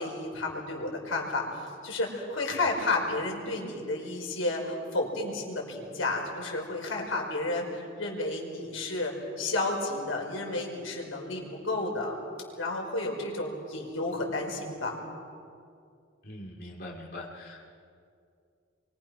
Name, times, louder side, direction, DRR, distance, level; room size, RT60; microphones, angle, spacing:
voice 1, 0.0-12.2 12.6-14.9, left 2 dB, 85° left, 0 dB, 5.3 m, -32 dB
voice 2, 16.2-17.7, left 1 dB, 55° left, -3 dB, 2.9 m, -42 dB
29.5 x 24.0 x 6.0 m, 2.3 s
head